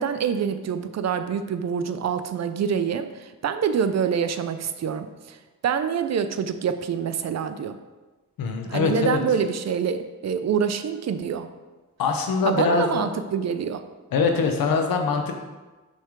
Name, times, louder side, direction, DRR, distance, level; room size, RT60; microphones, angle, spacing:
voice 1, 0.0-5.4 5.6-7.8 8.7-11.5 12.4-13.8, right 7 dB, 50° right, 10 dB, 0.5 m, -26 dB
voice 2, 8.4-9.2 12.0-13.1 14.1-15.3, left 5 dB, 85° left, 4 dB, 0.9 m, -23 dB
6.0 x 3.4 x 5.0 m, 1.2 s
cardioid pair, 90°, 34 cm